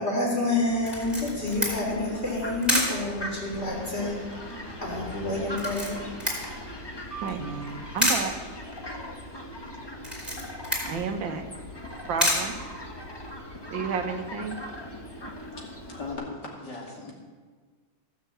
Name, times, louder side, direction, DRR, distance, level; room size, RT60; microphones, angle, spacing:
voice 1, 0.0-6.1 7.1-7.6, left 2 dB, 30° left, -3 dB, 3.9 m, -29 dB
Fowl, 0.6-16.1, equal, 15° left, 1.1 m, -40 dB
Camera, 0.9-13.3, equal, ahead, 4.4 m, -32 dB
voice 2, 7.2-8.3 10.9-11.5 12.1-12.5 13.7-14.6, right 5 dB, 75° right, 6 dB, 1.8 m, -31 dB
voice 3, 15.9-17.1, left 3 dB, 55° left, -2 dB, 3.1 m, -37 dB
16.5 x 6.8 x 8.0 m, 1.5 s
omnidirectional pair, 2.1 m